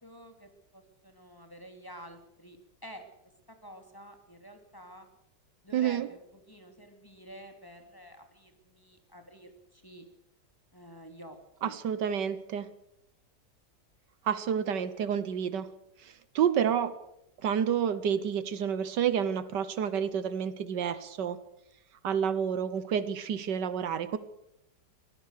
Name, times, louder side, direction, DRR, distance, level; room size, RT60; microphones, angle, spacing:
voice 1, 0.0-2.6 2.8-3.0 3.5-5.1 5.6-10.0 10.7-11.4 11.6-11.8 18.0-18.1, equal, 10° left, 5 dB, 2.8 m, -50 dB
voice 2, 5.7-6.1 11.6-12.7 14.2-15.7 16.0-17.0 17.4-21.4 22.0-24.2, right 8 dB, 75° right, 15 dB, 1.6 m, -29 dB
23.5 x 17.5 x 6.6 m, 0.82 s
omnidirectional pair, 1.9 m